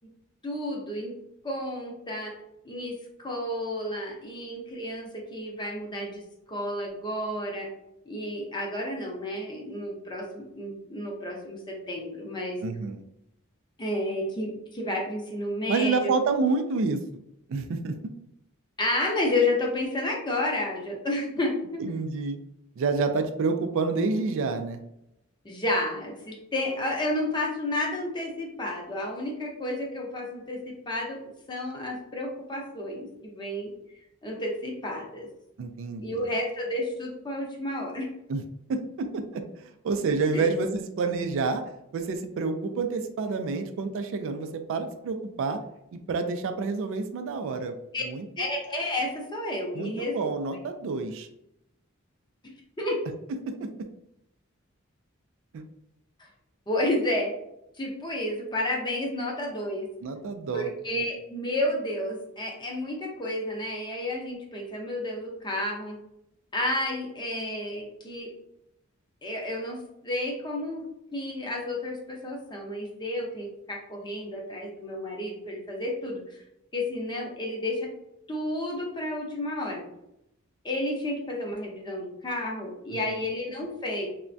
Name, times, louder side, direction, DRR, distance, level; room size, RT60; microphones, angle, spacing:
voice 1, 0.4-1.1 1.4-2.3 2.6-7.7 8.1-12.6 13.8-16.0 18.8-21.8 25.4-31.2 31.5-33.7 34.2-35.3 36.0-38.1 40.3-40.5 47.9-48.0 48.4-50.3 52.4-53.0 56.7-57.3 57.8-59.9 60.5-66.0 66.5-68.3 69.2-70.8 71.1-76.4 76.7-77.9 78.3-79.9 80.6-84.1, left 1 dB, 20° left, 0 dB, 0.6 m, -31 dB
voice 2, 12.6-13.0 15.7-17.0 17.5-18.0 21.8-22.4 22.8-24.8 35.6-36.2 38.3-38.4 38.7-41.6 41.9-45.6 45.9-48.2 49.7-51.3 53.6-53.7 55.5-55.6 60.0-60.7 83.1-83.2, right 4 dB, 65° right, 7 dB, 0.3 m, -28 dB
3.3 x 2.1 x 2.5 m, 0.82 s
head